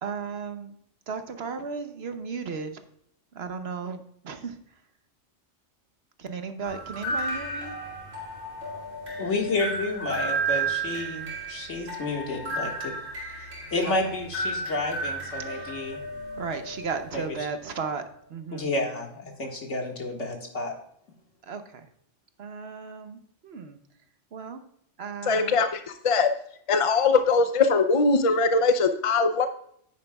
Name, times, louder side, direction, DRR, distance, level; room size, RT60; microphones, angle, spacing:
voice 1, 0.0-0.8 1.1-2.8 3.3-4.6 6.2-7.7 13.9-14.0 15.5-15.7 16.4-18.0 18.3-18.7 21.4-21.9 22.4-23.8 24.3-24.6 25.0-25.6, right 5 dB, 60° right, 8 dB, 1.0 m, -35 dB
sound 1, 6.6-17.4, right 2 dB, 80° right, 2.6 m, -33 dB
voice 2, 9.2-12.9 13.7-16.0 17.1-17.2 18.5-20.7, left 2 dB, 70° left, 1 dB, 2.0 m, -30 dB
voice 3, 25.3-26.3 26.7-29.5, left 4 dB, 45° left, 9 dB, 0.4 m, -21 dB
9.6 x 9.4 x 2.3 m, 0.68 s
omnidirectional pair, 1.3 m